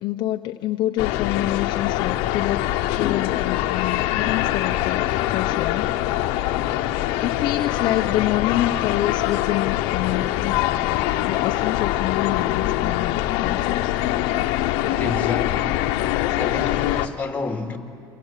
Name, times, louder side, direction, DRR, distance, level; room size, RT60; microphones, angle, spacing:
voice 1, 0.0-5.9 7.2-10.6 11.3-13.9, left 14 dB, 55° left, 0.8 m, -27 dB
sound 1, 1.0-17.1, left 14 dB, 80° left, 1.0 m, -23 dB
voice 2, 14.8-15.9 16.3-17.8, left 3 dB, 15° left, 2.5 m, -30 dB
29.5 x 25.0 x 7.5 m
cardioid pair, 135°, 9 cm